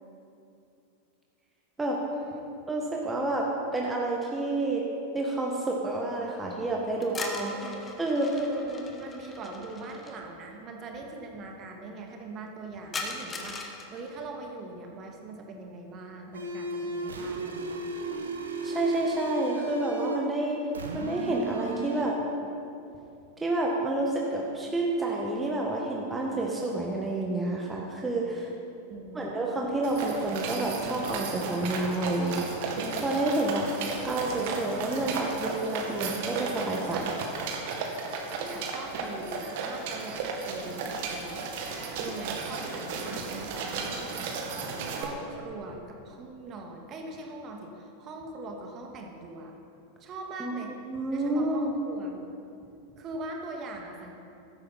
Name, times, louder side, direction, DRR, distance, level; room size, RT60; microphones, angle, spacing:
voice 1, 2.1-2.5 7.5-7.8 8.3-17.9 28.9-29.2 38.0-41.5 42.0-44.1 44.9-49.5 50.0-50.7 51.1-52.2 53.0-54.1, right 2 dB, 30° right, 2 dB, 2.0 m, -41 dB
voice 2, 2.7-4.8 5.1-7.5 8.0-8.3 18.6-20.6 20.9-22.2 23.4-28.5 29.1-33.7 34.0-37.2 50.4-51.7, right 2 dB, 10° right, -2 dB, 1.6 m, -29 dB
sound 1, 7.0-10.1 12.9-14.1, left 3 dB, 20° left, 1.6 m, -39 dB
sound 2, 16.3-20.3 20.7-22.1, right 2 dB, 70° right, 1.4 m, -35 dB
sound 3, 29.8-45.0, right 4 dB, 50° right, 2.1 m, -34 dB
15.5 x 13.5 x 4.4 m, 2.7 s
figure-of-eight pair, 90°, 0 cm